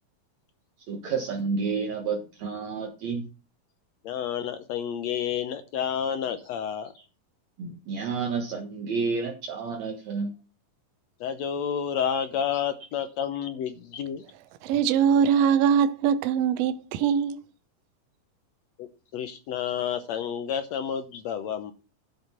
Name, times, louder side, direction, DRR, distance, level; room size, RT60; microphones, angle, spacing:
voice 1, 0.9-3.3 7.6-10.3, right 5 dB, 60° right, 2.5 m, -30 dB
voice 2, 4.0-6.9 11.2-14.2 18.8-21.7, left 8 dB, 70° left, 1.7 m, -30 dB
voice 3, 14.6-17.4, right 8 dB, 85° right, 1.4 m, -22 dB
12.0 x 6.1 x 5.7 m
omnidirectional pair, 3.8 m